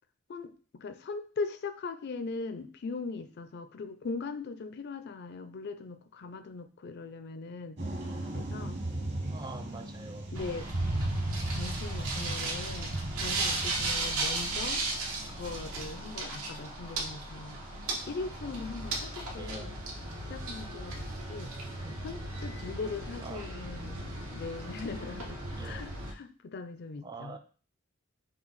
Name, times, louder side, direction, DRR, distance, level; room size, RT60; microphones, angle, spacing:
voice 1, 0.3-7.8 8.3-8.8 10.3-10.7 11.0-11.1 11.4-14.9 15.3-17.6 18.1-19.8 20.3-21.5 22.0-27.4, left 4 dB, 50° left, 10 dB, 0.4 m, -40 dB
sound 1, 7.8-13.9, right 1 dB, 50° right, 1.2 m, -35 dB
voice 2, 9.3-10.3 19.4-19.7 21.8-22.0 23.2-23.5 23.8-24.0 25.6-25.8 27.0-27.4, right 3 dB, 20° right, 7 dB, 0.4 m, -44 dB
sound 2, 10.4-26.1, right 2 dB, 85° right, 1.1 m, -36 dB
5.8 x 2.3 x 3.9 m, 0.39 s
head